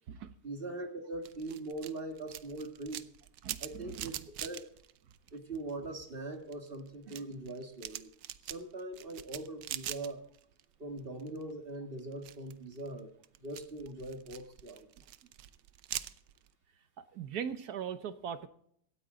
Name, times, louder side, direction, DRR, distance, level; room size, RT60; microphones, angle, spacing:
voice 1, 0.4-3.0 3.6-4.7 5.3-8.1 8.5-10.3 10.8-13.1 13.4-14.9, right 2 dB, 35° right, 5 dB, 1.9 m, -41 dB
sound 1, 1.2-5.8 6.2-10.6 10.9-11.5 12.0-16.5, right 12 dB, 85° right, 1.4 m, -44 dB
voice 2, 3.4-4.1 17.0-18.5, right 8 dB, 65° right, 12 dB, 1.3 m, -40 dB
17.0 x 14.0 x 3.8 m, 0.68 s
omnidirectional pair, 1.9 m